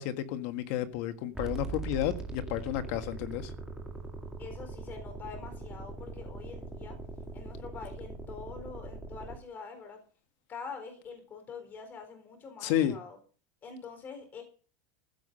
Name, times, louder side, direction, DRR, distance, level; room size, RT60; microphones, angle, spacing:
voice 1, 0.0-3.5 12.6-12.9, left 11 dB, 50° left, 1.7 m, -31 dB
sound 1, 1.3-9.4, right 3 dB, 5° right, 2.0 m, -41 dB
voice 2, 4.4-7.0 7.3-10.0 10.5-13.2 13.6-14.4, left 5 dB, 20° left, 4.2 m, -45 dB
15.0 x 7.4 x 6.6 m
supercardioid pair, 170°, 9 cm